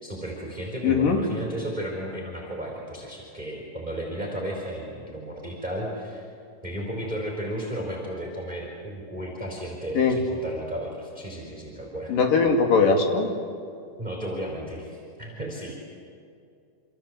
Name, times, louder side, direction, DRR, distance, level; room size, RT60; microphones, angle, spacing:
voice 1, 0.0-6.3 6.6-12.3 14.0-15.8, right 1 dB, 10° right, -1 dB, 4.3 m, -34 dB
voice 2, 0.8-1.2 10.0-10.2 12.1-13.3, left 5 dB, 85° left, 3 dB, 4.3 m, -20 dB
27.5 x 27.0 x 7.9 m, 2.5 s
omnidirectional pair, 3.8 m